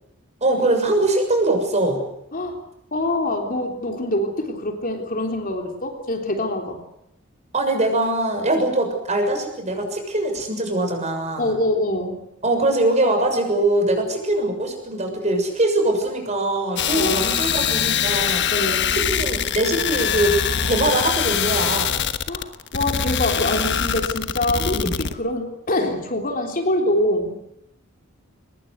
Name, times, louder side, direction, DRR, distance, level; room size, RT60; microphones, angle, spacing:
voice 1, 0.4-2.0 7.5-11.6 12.4-18.5 18.9-22.0 24.5-24.9, right 2 dB, 35° right, 4 dB, 6.7 m, -22 dB
voice 2, 2.9-6.8 11.4-12.2 17.0-17.2 18.5-18.9 22.3-24.8 25.1-27.4, left 1 dB, 45° left, 3 dB, 3.6 m, -24 dB
sound 1, 16.8-25.1, left 8 dB, 60° left, 1.3 m, -23 dB
23.5 x 21.0 x 8.2 m, 0.79 s
head